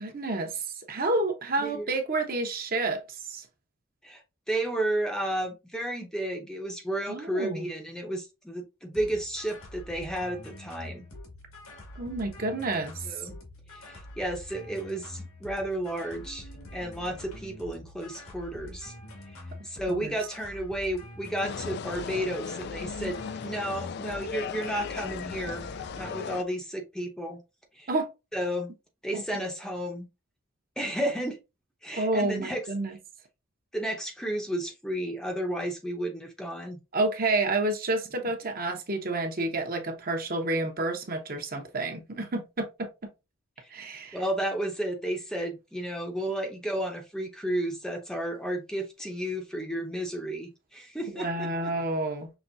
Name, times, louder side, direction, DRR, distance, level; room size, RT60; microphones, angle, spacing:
voice 1, 0.0-3.4 7.1-7.7 12.0-13.1 19.9-20.1 27.9-28.1 29.1-29.2 31.9-33.0 36.9-42.9 43.7-44.2 51.1-52.3, right 2 dB, 45° right, 0.9 m, -29 dB
voice 2, 4.5-11.1 13.1-13.4 13.7-18.9 19.6-25.7 26.0-27.4 27.7-27.9 28.3-28.7 29.0-30.1 30.8-31.4 31.8-32.6 33.7-36.8 43.6-43.7 44.1-51.7, right 1 dB, 5° left, 0.7 m, -32 dB
sound 1, 8.9-26.3, left 1 dB, 90° left, 2.0 m, -45 dB
sound 2, 21.4-26.4, left 6 dB, 50° left, 0.3 m, -37 dB
6.0 x 3.2 x 2.6 m
head